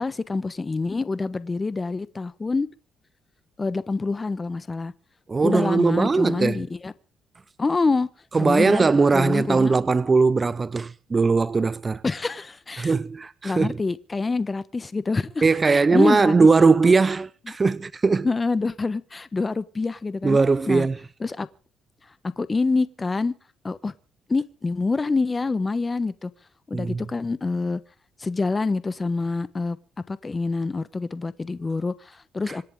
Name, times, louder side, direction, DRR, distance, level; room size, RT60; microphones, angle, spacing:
voice 1, 0.0-2.7 3.6-4.9 5.4-6.9 7.6-8.1 8.4-8.9 9.1-9.7 12.0-12.9 13.4-16.3 18.2-20.4 20.7-20.9 21.2-21.5 22.2-23.3 23.6-23.9 24.3-26.3 26.7-27.8 28.2-29.8 30.1-32.6, left 3 dB, 25° left, 1.2 m, -26 dB
voice 2, 5.3-6.6 8.3-12.0 12.8-13.8 15.4-18.3 20.2-21.0 26.7-27.0, right 4 dB, 30° right, 0.8 m, -20 dB
26.5 x 10.5 x 3.8 m
cardioid pair, 90°, 0 cm